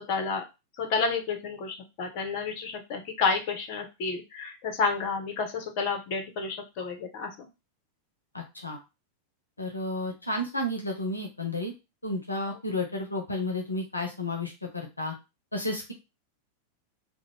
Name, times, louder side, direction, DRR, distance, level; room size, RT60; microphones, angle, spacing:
voice 1, 0.1-0.4 0.8-7.5 12.5-12.6, left 4 dB, 45° left, 4 dB, 0.7 m, -30 dB
voice 2, 8.3-8.8 9.6-11.7 12.0-15.1 15.5-15.9, left 1 dB, 85° left, 1 dB, 0.6 m, -32 dB
2.5 x 2.1 x 3.1 m, 0.25 s
figure-of-eight pair, 90°, 0 cm